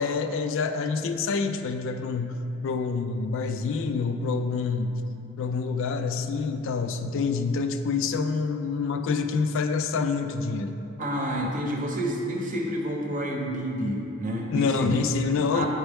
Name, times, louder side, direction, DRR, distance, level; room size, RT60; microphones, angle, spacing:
voice 1, 0.0-4.9 5.4-10.7 14.5-15.7, left 4 dB, 65° left, 7 dB, 0.4 m, -27 dB
voice 2, 11.0-14.9 15.5-15.7, equal, 40° right, 0 dB, 0.8 m, -29 dB
8.8 x 4.4 x 3.5 m, 2.8 s
head